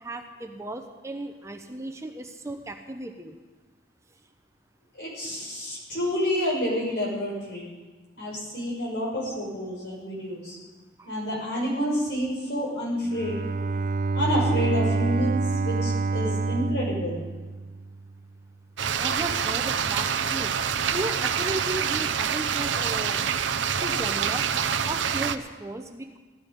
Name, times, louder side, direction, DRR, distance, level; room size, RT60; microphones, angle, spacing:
voice 1, 0.0-3.3 11.0-11.1 19.0-20.6 20.9-23.2 23.8-24.5 24.9-26.2, right 1 dB, 15° right, 5 dB, 0.8 m, -35 dB
voice 2, 4.9-7.7 8.2-10.6 11.0-13.4 14.1-17.2, equal, 65° left, -4 dB, 5.8 m, -29 dB
Bowed string instrument, 13.0-18.1, right 3 dB, 45° right, 0.3 m, -27 dB
sound 1, 18.8-25.4, right 7 dB, 85° right, 0.6 m, -26 dB
16.0 x 12.0 x 5.3 m, 1.3 s
head